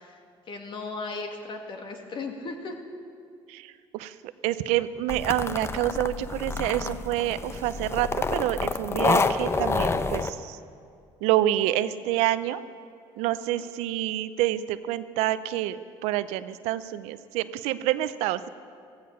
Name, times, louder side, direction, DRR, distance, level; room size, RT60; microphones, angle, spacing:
voice 1, 0.0-2.8 13.5-13.7, left 3 dB, 50° left, 3 dB, 2.3 m, -37 dB
voice 2, 3.5-4.2 4.4-10.6 11.2-12.6 13.2-18.5, right 14 dB, 85° right, 14 dB, 0.6 m, -27 dB
sound 1, 5.1-10.3, left 4 dB, 25° left, 0.8 m, -28 dB
15.5 x 15.0 x 5.7 m, 2.4 s
supercardioid pair, 85°, 11 cm